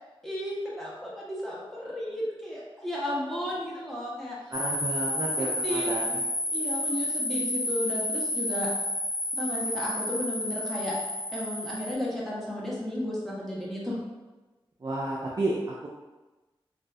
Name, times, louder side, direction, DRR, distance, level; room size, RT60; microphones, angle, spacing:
voice 1, 0.2-4.4 5.4-5.9 6.5-8.7 9.4-10.9 11.3-14.0, left 1 dB, 5° left, -6 dB, 0.9 m, -33 dB
sound 1, 4.5-11.9, left 1 dB, 75° left, 0.4 m, -30 dB
voice 2, 4.5-6.2 14.8-15.9, right 2 dB, 40° right, -4 dB, 0.4 m, -31 dB
2.5 x 2.4 x 2.2 m, 1.1 s
wide cardioid pair, 60°, 10 cm